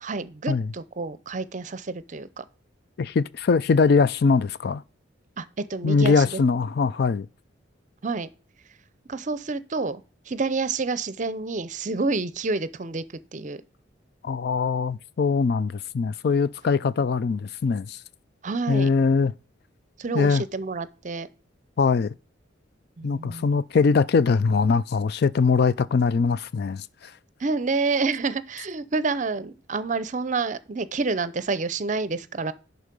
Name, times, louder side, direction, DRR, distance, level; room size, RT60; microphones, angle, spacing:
voice 1, 0.0-2.4 5.4-6.4 8.0-8.3 9.1-13.0 13.3-13.6 18.4-18.9 20.0-21.3 23.0-23.5 27.4-32.5, right 3 dB, 40° right, 0.6 m, -28 dB
voice 2, 3.0-4.8 5.8-7.3 14.2-18.0 18.7-19.3 20.1-20.4 21.8-22.1 23.0-27.1, left 5 dB, 55° left, 0.4 m, -22 dB
11.0 x 4.1 x 5.2 m
head